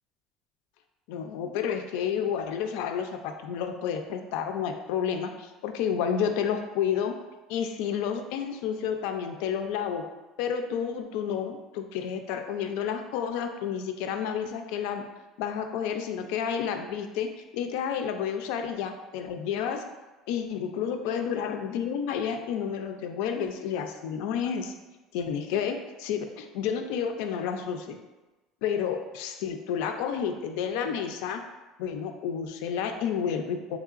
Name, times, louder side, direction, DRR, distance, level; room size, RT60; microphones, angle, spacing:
voice 1, 1.1-7.2 7.5-10.0 10.4-15.0 15.4-19.8 20.3-24.7 25.1-28.0 28.6-31.4 31.8-33.8, left 7 dB, 70° left, 6 dB, 0.3 m, -30 dB
3.7 x 3.2 x 2.4 m, 1.1 s
cardioid pair, 170°, 0 cm